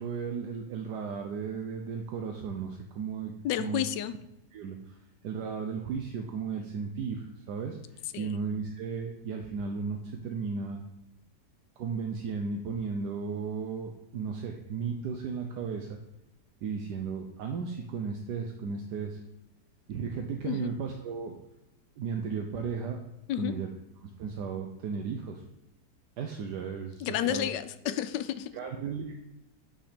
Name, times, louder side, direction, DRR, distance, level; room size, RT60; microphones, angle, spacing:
voice 1, 0.0-3.3 3.6-3.8 4.5-5.0 5.2-7.8 8.2-10.8 11.8-16.0 16.6-19.2 19.9-21.4 22.0-23.0 23.4-23.7 24.0-25.4 26.2-27.5 27.9-28.0 28.5-29.1, right 5 dB, 75° right, 3 dB, 1.3 m, -35 dB
voice 2, 3.4-4.1 8.1-8.4 20.4-20.7 23.3-23.5 27.0-28.5, left 11 dB, 90° left, 12 dB, 1.3 m, -31 dB
8.6 x 5.3 x 5.1 m, 0.92 s
omnidirectional pair, 1.8 m